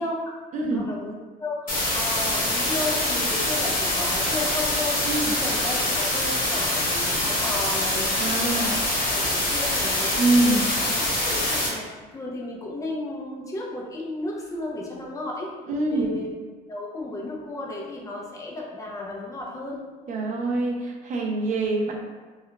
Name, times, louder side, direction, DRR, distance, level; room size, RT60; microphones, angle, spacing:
voice 1, 0.0-0.4 0.7-8.1 8.4-10.1 10.4-11.9 12.1-15.5 15.8-16.3 16.7-19.8, left 2 dB, 20° left, -2 dB, 0.5 m, -34 dB
voice 2, 0.5-0.9 5.1-5.3 8.2-8.8 10.2-10.7 15.7-16.2 20.1-21.9, right 2 dB, 45° right, 0 dB, 0.5 m, -24 dB
sound 1, 1.7-11.7, left 1 dB, 50° left, 1.1 m, -25 dB
2.8 x 2.3 x 2.2 m, 1.4 s
cardioid pair, 110°, 17 cm